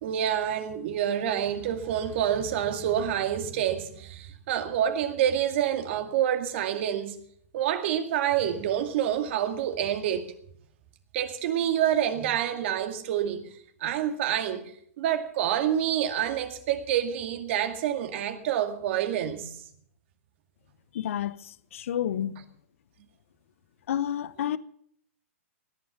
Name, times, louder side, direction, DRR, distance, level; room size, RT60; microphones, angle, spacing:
voice 1, 0.0-7.2 7.5-10.3 11.1-13.5 13.8-14.7 15.0-19.6, right 10 dB, 50° right, 2.2 m, -27 dB
voice 2, 20.9-22.3 23.9-24.6, left 10 dB, 65° left, 0.8 m, -30 dB
18.0 x 10.5 x 7.3 m
hypercardioid pair, 120°, 8 cm